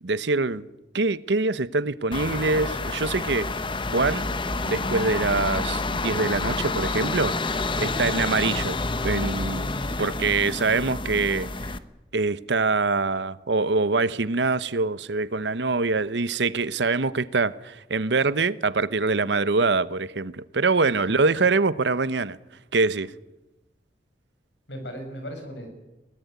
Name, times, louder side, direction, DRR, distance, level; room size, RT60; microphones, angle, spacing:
voice 1, 0.0-0.7 0.9-3.5 3.9-4.4 4.6-8.8 9.0-9.7 10.0-11.7 12.1-22.4 22.7-23.1, right 3 dB, 80° right, 0.9 m, -24 dB
sound 1, 2.1-11.8, left 3 dB, 30° left, 1.0 m, -28 dB
voice 2, 24.7-25.7, equal, 85° left, 6.9 m, -38 dB
22.5 x 18.0 x 9.4 m
head